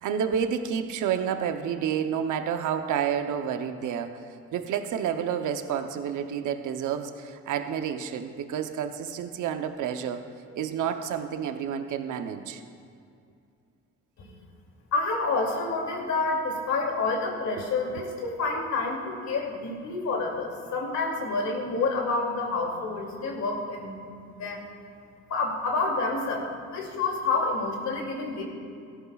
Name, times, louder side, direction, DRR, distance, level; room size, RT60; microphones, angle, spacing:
voice 1, 0.0-4.2 4.5-10.3 10.6-12.6, right 8 dB, 80° right, 7 dB, 0.8 m, -29 dB
voice 2, 14.9-24.7 25.3-28.4, left 3 dB, 65° left, 0 dB, 2.7 m, -28 dB
17.5 x 14.0 x 2.4 m, 2.4 s
cardioid pair, 90°, 30 cm